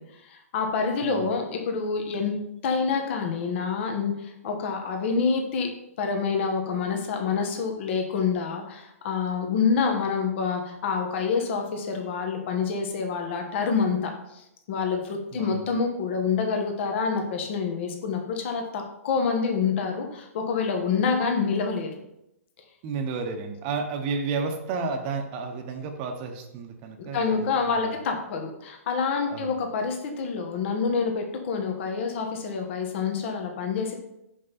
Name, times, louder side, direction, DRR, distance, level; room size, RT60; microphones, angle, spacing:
voice 1, 0.2-2.3 2.6-5.7 6.0-21.9 27.1-34.0, left 5 dB, 50° left, 3 dB, 1.1 m, -27 dB
voice 2, 1.0-1.4 15.3-15.7 22.8-28.0 29.3-29.5, right 4 dB, 35° right, 4 dB, 0.8 m, -32 dB
5.3 x 5.3 x 4.1 m, 0.83 s
hypercardioid pair, 135°, 8 cm